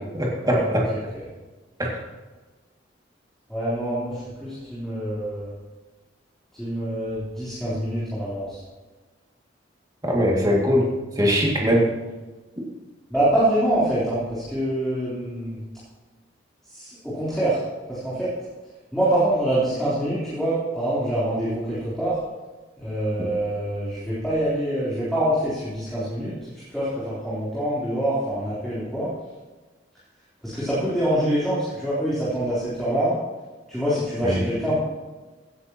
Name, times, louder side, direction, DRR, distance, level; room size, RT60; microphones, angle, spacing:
voice 1, 0.1-0.9 1.8-1.9 10.0-10.9 11.2-11.9 34.2-34.4, equal, 20° right, -3 dB, 2.2 m, -21 dB
voice 2, 0.9-1.2 3.5-5.5 6.5-8.6 13.1-15.6 16.7-17.6 17.9-18.3 18.9-22.2 22.8-29.1 30.4-33.2 33.7-34.8, right 1 dB, ahead, -11 dB, 3.5 m, -25 dB
16.5 x 9.7 x 2.9 m, 1.2 s
head